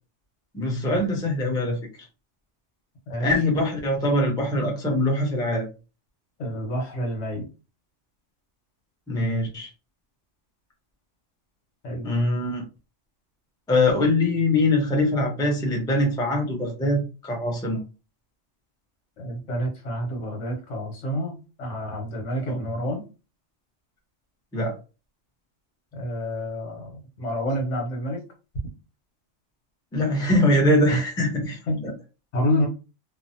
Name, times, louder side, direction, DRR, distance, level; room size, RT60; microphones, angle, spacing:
voice 1, 0.5-1.8 3.2-5.7 9.1-9.7 12.0-12.6 13.7-17.8 22.5-22.6 24.5-24.7 29.9-31.9, left 1 dB, 5° left, 0 dB, 0.5 m, -23 dB
voice 2, 6.4-7.4 11.8-12.1 19.2-23.0 25.9-28.2 30.9-31.0 31.7-31.8 32.3-32.7, equal, 70° left, 0 dB, 1.4 m, -28 dB
3.1 x 2.1 x 2.6 m, 0.31 s
omnidirectional pair, 1.3 m